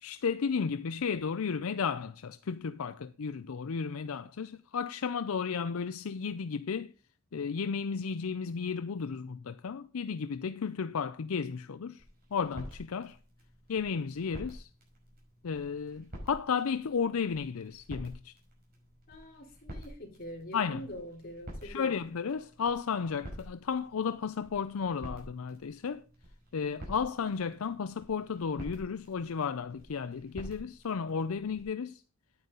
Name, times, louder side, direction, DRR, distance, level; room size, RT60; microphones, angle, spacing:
voice 1, 0.0-6.9 7.3-12.0 12.3-13.2 13.7-14.7 15.4-18.3 20.5-20.8 21.6-26.0 26.5-32.0, left 6 dB, 75° left, 0.5 m, -33 dB
sound 1, 12.0-31.6, equal, 45° right, 5.7 m, -49 dB
voice 2, 19.1-22.1, equal, 45° left, 3.6 m, -44 dB
9.6 x 9.5 x 3.8 m
head